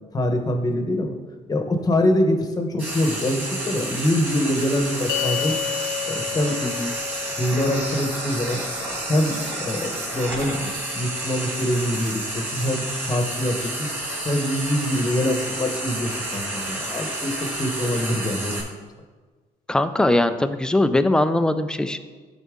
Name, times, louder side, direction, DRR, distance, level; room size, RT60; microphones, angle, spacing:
voice 1, 0.1-1.1 1.5-5.5 6.1-6.6 7.4-8.6 9.1-13.9 14.2-18.6, left 1 dB, 20° left, 4 dB, 1.1 m, -24 dB
Frying (food), 2.8-18.6, right 1 dB, 10° right, 2.4 m, -30 dB
sound 1, 5.1-11.6, left 10 dB, 70° left, 0.6 m, -33 dB
voice 2, 19.7-22.0, left 1 dB, 5° left, 10 dB, 0.4 m, -21 dB
12.0 x 4.1 x 3.7 m, 1.4 s
cardioid pair, 110°, 17 cm